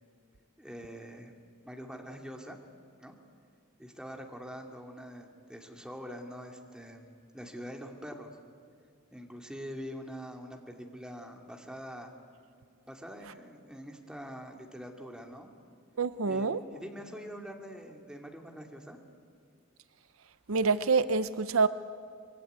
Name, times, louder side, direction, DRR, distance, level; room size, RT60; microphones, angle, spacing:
voice 1, 0.6-1.3 1.6-2.6 3.0-3.1 3.8-7.0 7.3-8.3 9.1-12.1 12.9-15.5 16.2-19.0, equal, 5° right, 2 dB, 2.5 m, -44 dB
voice 2, 16.0-16.6 20.5-21.7, right 4 dB, 75° right, 13 dB, 0.7 m, -26 dB
25.0 x 23.0 x 9.6 m, 2.2 s
head